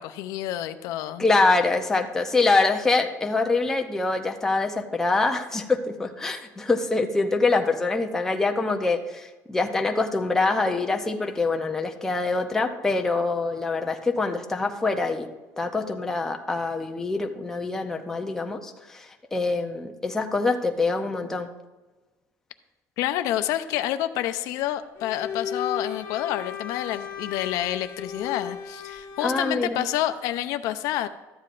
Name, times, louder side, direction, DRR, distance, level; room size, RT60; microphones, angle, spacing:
voice 1, 0.0-1.3 23.0-31.1, left 13 dB, 70° left, 10 dB, 0.5 m, -28 dB
voice 2, 1.2-19.1 19.3-21.5 29.2-29.8, left 3 dB, 5° left, 3 dB, 0.5 m, -25 dB
Bowed string instrument, 25.0-29.5, left 7 dB, 45° left, 1.5 m, -35 dB
13.0 x 9.4 x 2.5 m, 1.2 s
cardioid pair, 175°, 6 cm